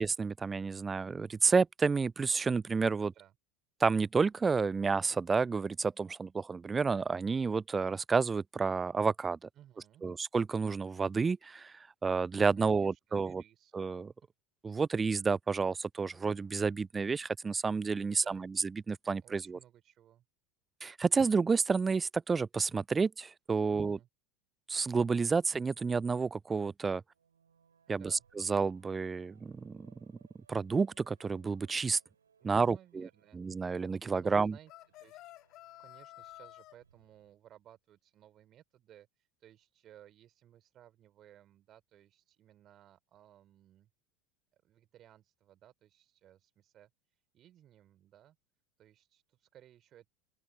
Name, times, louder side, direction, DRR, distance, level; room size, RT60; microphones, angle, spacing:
voice 1, 0.0-3.1 3.8-9.5 10.0-11.7 12.0-13.4 13.7-14.1 14.6-19.6 20.8-24.0 24.7-27.0 27.9-29.9 30.5-32.0 32.4-33.1 33.3-34.6, right 4 dB, 20° right, 0.3 m, -30 dB
voice 2, 3.0-3.3 9.5-10.1 12.6-13.7 18.0-18.5 19.2-20.2 23.7-24.1 27.9-28.2 32.4-33.7 34.1-34.7 35.0-35.3 35.8-43.9 44.5-46.9 47.3-48.4 48.8-50.1, right 11 dB, 40° right, 3.2 m, -60 dB
sound 1, 16.1-16.7, equal, ahead, 7.6 m, -64 dB
sound 2, 27.0-37.3, right 7 dB, 75° right, 3.5 m, -70 dB
sound 3, 34.7-36.8, left 16 dB, 45° left, 1.6 m, -52 dB
open air
figure-of-eight pair, 75°, 0 cm